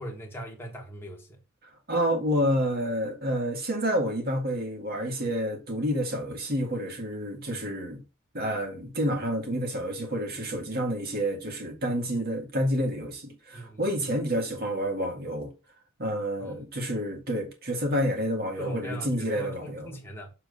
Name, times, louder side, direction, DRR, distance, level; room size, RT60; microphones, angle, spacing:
voice 1, 0.0-1.4 7.5-7.6 10.3-10.5 11.9-12.0 13.5-13.8 16.4-16.5 18.6-20.3, equal, 10° left, 1.6 m, -40 dB
voice 2, 1.9-8.0 8.3-15.5 16.0-19.9, equal, 45° right, 2.0 m, -29 dB
7.0 x 3.8 x 5.3 m
head